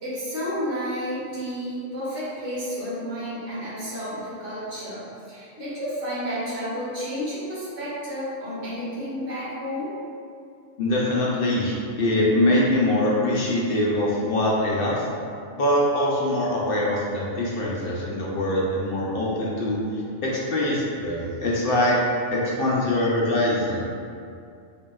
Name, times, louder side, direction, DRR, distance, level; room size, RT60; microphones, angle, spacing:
voice 1, 0.0-9.9, equal, 70° right, -11 dB, 1.9 m, -31 dB
voice 2, 10.8-15.1 15.6-19.8 20.2-22.0 22.3-23.8, left 1 dB, 60° left, -5 dB, 0.7 m, -23 dB
4.9 x 2.7 x 2.3 m, 2.4 s
omnidirectional pair, 1.2 m